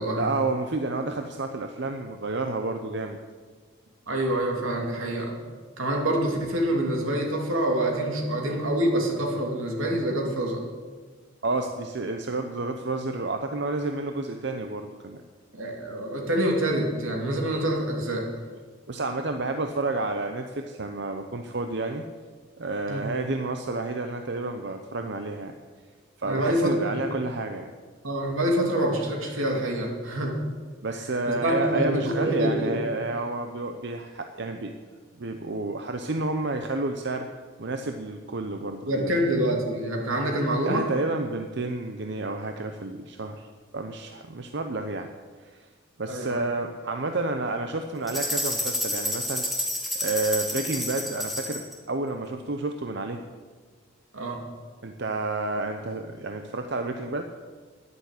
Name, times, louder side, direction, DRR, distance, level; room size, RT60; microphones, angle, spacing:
voice 1, 0.1-3.2 11.4-15.2 18.9-22.1 22.6-25.6 26.2-27.7 30.8-34.7 35.2-37.3 37.6-39.2 40.6-43.5 43.7-45.1 45.4-45.7 46.0-49.5 50.0-53.2 54.8-57.3, right 2 dB, 55° right, 6 dB, 0.7 m, -30 dB
voice 2, 4.1-5.4 5.8-10.6 15.5-18.3 22.9-23.1 26.2-27.1 28.0-30.4 31.3-32.8 38.9-40.9 46.1-46.4 54.1-54.4, right 1 dB, 85° right, 1 dB, 2.8 m, -26 dB
sound 1, 48.1-51.7, left 1 dB, ahead, 1.8 m, -29 dB
10.5 x 10.5 x 8.3 m, 1.5 s
head